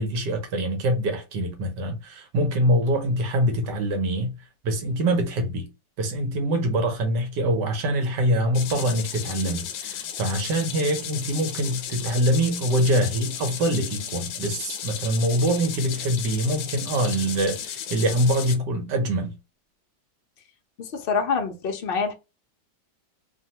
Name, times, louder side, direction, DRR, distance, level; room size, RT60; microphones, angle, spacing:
voice 1, 0.0-4.3 4.6-5.7 6.0-19.4, right 1 dB, 70° right, 1.3 m, -24 dB
sound 1, 8.5-18.6, left 9 dB, 90° left, 1.3 m, -34 dB
voice 2, 20.8-22.1, left 5 dB, 70° left, 0.5 m, -26 dB
3.2 x 2.2 x 2.7 m
omnidirectional pair, 2.0 m